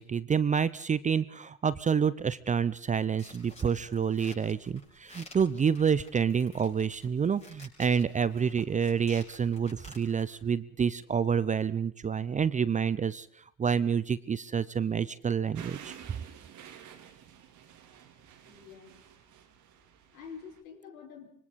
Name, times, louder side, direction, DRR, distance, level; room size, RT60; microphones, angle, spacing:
voice 1, 0.0-13.3 13.6-15.9, right 7 dB, 15° right, 18 dB, 0.7 m, -28 dB
sound 1, 3.2-10.4, left 2 dB, 15° left, 7.2 m, -53 dB
sound 2, 15.5-20.6, right 9 dB, 45° right, 3.4 m, -50 dB
voice 2, 18.1-19.3 19.8-21.3, left 6 dB, 75° left, 3 dB, 5.6 m, -49 dB
25.0 x 25.0 x 4.2 m, 0.64 s
hypercardioid pair, 80°, 42 cm